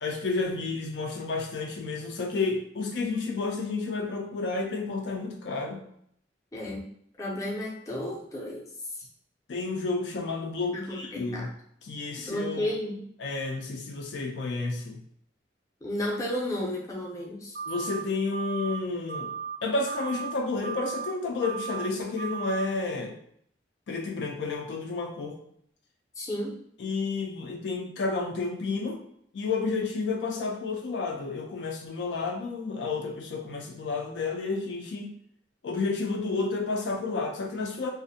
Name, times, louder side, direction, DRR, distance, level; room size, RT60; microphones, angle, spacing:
voice 1, 0.0-5.8 9.5-11.5 11.8-12.8 13.2-15.0 17.7-19.3 19.6-23.1 23.9-25.4 26.8-29.0 29.3-35.1 35.6-37.9, left 3 dB, 75° left, 2 dB, 0.4 m, -31 dB
voice 2, 6.5-6.8 7.2-8.6 10.7-11.5 12.2-13.0 15.8-17.6 26.2-26.5, left 1 dB, 20° left, -4 dB, 0.5 m, -32 dB
sound 1, 17.5-18.0 18.3-18.8 19.1-19.6 19.8-20.3 20.6-21.1 21.4-21.9 22.2-22.7, right 6 dB, 45° right, 0.3 m, -35 dB
2.5 x 2.1 x 2.6 m, 0.68 s
head